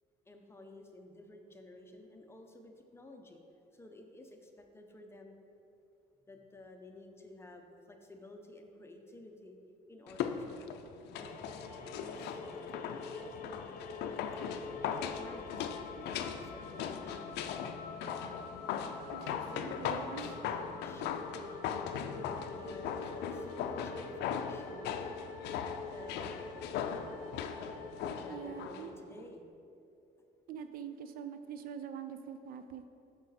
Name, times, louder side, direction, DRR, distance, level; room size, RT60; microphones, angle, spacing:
voice 1, 0.3-3.4 3.7-5.4 6.3-9.6 9.9-11.3 11.9-13.1 14.9-15.7 16.2-17.5 19.4-21.4 22.0-24.9 25.9-27.2 28.2-29.5, left 2 dB, 15° left, 3 dB, 0.7 m, -53 dB
sound 1, 10.1-28.9 29.2-29.3, left 8 dB, 80° left, 0.4 m, -39 dB
sound 2, 11.1-28.7, left 3 dB, 55° left, 0.8 m, -46 dB
voice 2, 19.1-20.3 28.3-28.9 30.5-32.9, right 8 dB, 60° right, 9 dB, 0.4 m, -44 dB
6.3 x 6.1 x 4.1 m, 2.7 s
cardioid pair, 110°, 17 cm